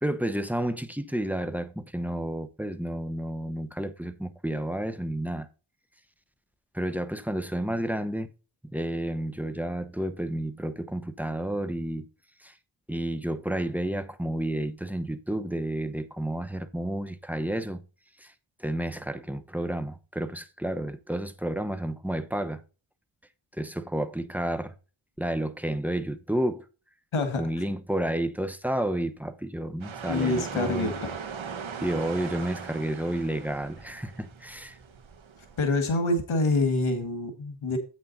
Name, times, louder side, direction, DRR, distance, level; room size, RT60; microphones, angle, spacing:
voice 1, 0.0-5.5 6.7-8.3 8.7-12.0 12.4-12.5 12.9-17.8 18.2-18.3 18.6-22.6 23.6-24.7 25.2-26.6 27.4-30.9 31.8-34.8, right 1 dB, 5° right, 0.9 m, -31 dB
sound 1, 29.8-35.7, right 6 dB, 75° right, 1.4 m, -40 dB
voice 2, 30.1-31.1 35.6-37.8, left 2 dB, 80° left, 1.8 m, -26 dB
8.5 x 6.3 x 4.1 m
cardioid pair, 60°, 47 cm